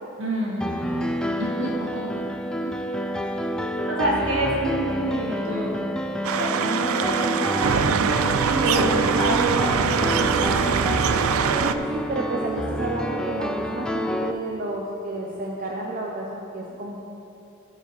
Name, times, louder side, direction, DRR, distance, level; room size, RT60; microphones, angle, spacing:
voice 1, 0.2-2.3 2.6-2.7 3.9-5.8 6.2-7.9 8.4-10.4, right 1 dB, 65° right, -3 dB, 2.1 m, -28 dB
Piano, 0.6-14.3, equal, 5° left, 0.3 m, -28 dB
sound 1, 6.2-11.7, right 7 dB, 85° right, 0.4 m, -23 dB
voice 2, 11.6-17.0, right 2 dB, 40° right, -2 dB, 0.8 m, -31 dB
14.0 x 5.0 x 6.0 m, 2.8 s
head